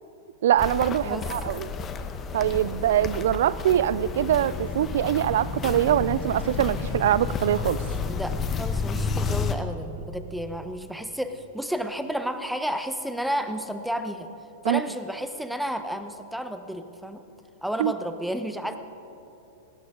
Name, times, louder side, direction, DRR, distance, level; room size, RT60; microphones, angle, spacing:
voice 1, 0.4-1.7 2.3-7.8 14.6-14.8 17.8-17.9, right 11 dB, 70° right, 19 dB, 0.4 m, -23 dB
Walk footsteps, 0.6-9.5, left 5 dB, 25° left, 1.0 m, -31 dB
voice 2, 1.0-1.5 8.0-14.3 14.6-17.2 17.6-18.8, equal, ahead, 8 dB, 1.0 m, -31 dB
18.5 x 17.5 x 3.8 m, 2.9 s
hypercardioid pair, 105°, 0 cm